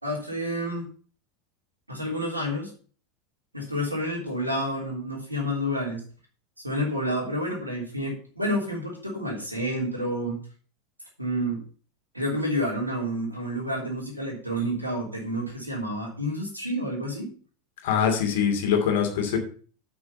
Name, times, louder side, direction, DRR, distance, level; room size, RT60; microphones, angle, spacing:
voice 1, 0.0-0.9 1.9-2.7 3.5-6.0 6.6-10.4 11.2-11.6 12.1-17.3, equal, 90° right, -1 dB, 3.3 m, -29 dB
voice 2, 17.8-19.4, left 7 dB, 60° left, 3 dB, 2.6 m, -23 dB
8.3 x 6.1 x 5.6 m, 0.41 s
figure-of-eight pair, 80°, 0 cm